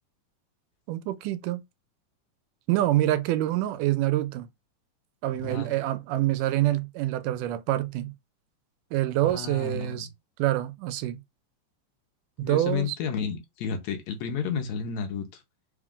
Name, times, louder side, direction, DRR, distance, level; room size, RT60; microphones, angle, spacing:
voice 1, 0.9-1.6 2.7-4.5 5.2-8.1 8.9-10.1 10.4-11.2 12.4-13.0, right 15 dB, 85° right, 2.0 m, -26 dB
voice 2, 5.3-5.7 9.2-10.1 12.4-15.4, left 6 dB, 70° left, 1.9 m, -32 dB
4.9 x 2.4 x 3.6 m
omnidirectional pair, 3.7 m